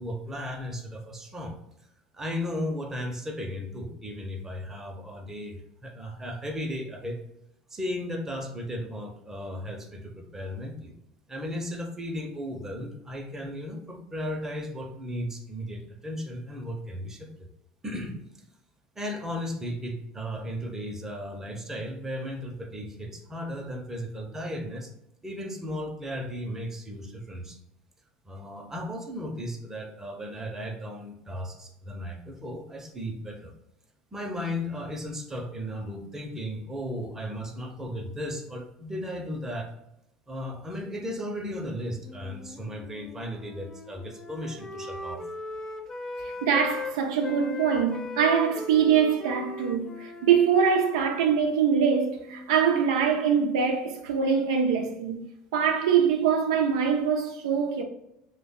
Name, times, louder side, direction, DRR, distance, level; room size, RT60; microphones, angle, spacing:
voice 1, 0.0-1.6 2.1-7.2 7.7-10.9 11.3-17.5 17.8-18.2 19.0-24.9 25.2-27.6 28.3-33.6 34.1-39.7 40.3-45.3, equal, 15° right, 0.7 m, -35 dB
Wind instrument woodwind instrument, 42.0-46.9 47.2-52.5, left 3 dB, 25° left, 0.4 m, -39 dB
voice 2, 46.2-55.2 55.5-57.8, right 7 dB, 90° right, 0.5 m, -23 dB
3.2 x 2.2 x 4.0 m
supercardioid pair, 95°, 3 cm